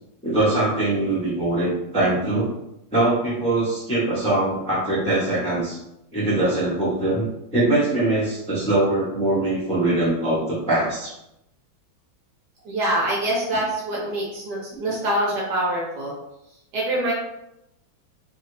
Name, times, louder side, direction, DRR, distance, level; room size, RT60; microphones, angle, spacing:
voice 1, 0.2-2.5 2.9-5.8 6.1-7.2 7.5-11.1 14.7-14.8, right 2 dB, 5° left, -9 dB, 0.5 m, -22 dB
voice 2, 12.6-16.1 16.7-17.1, right 1 dB, 65° right, -4 dB, 1.2 m, -25 dB
3.2 x 2.3 x 3.2 m, 0.84 s
omnidirectional pair, 2.2 m